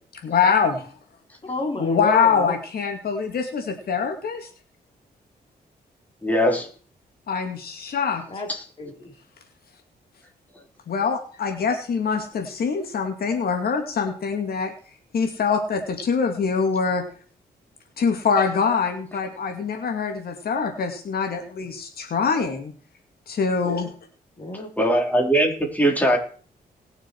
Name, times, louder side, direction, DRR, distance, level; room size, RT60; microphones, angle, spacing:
voice 1, 0.2-0.9 1.8-4.5 7.3-8.2 10.9-14.7 15.1-17.0 18.0-22.7 23.3-23.9, left 5 dB, 70° left, 4 dB, 2.3 m, -24 dB
voice 2, 1.4-2.5 8.3-8.5 8.8-9.1 24.4-24.7, left 2 dB, 35° left, 2 dB, 4.0 m, -30 dB
voice 3, 6.2-6.7 8.5-8.6 24.8-26.2, equal, 10° left, 0 dB, 4.1 m, -20 dB
20.0 x 6.8 x 4.7 m, 0.43 s
cardioid pair, 85°, 17 cm